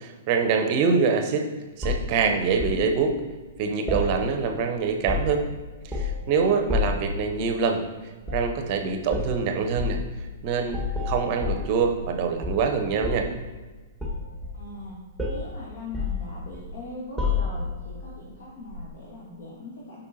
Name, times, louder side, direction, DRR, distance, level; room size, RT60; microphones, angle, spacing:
voice 1, 0.0-1.5 1.8-3.2 3.6-5.4 5.8-7.8 8.3-10.0 10.4-10.8 11.1-13.3, right 5 dB, 40° right, 5 dB, 0.8 m, -24 dB
sound 1, 1.8-2.8 3.9-4.6 4.9-5.5 5.9-6.3 6.7-7.1 8.2-8.5 9.1-9.3 9.8-10.0 10.7-12.1 12.4-13.4 14.0-14.9 15.2-15.5 15.9-16.7 17.2-17.8 18.7-18.9, left 4 dB, 5° left, 1.5 m, -29 dB
voice 2, 14.5-15.0 15.2-20.0, left 2 dB, 50° left, -4 dB, 1.7 m, -41 dB
8.2 x 5.4 x 2.8 m, 1.3 s
figure-of-eight pair, 110°, 0 cm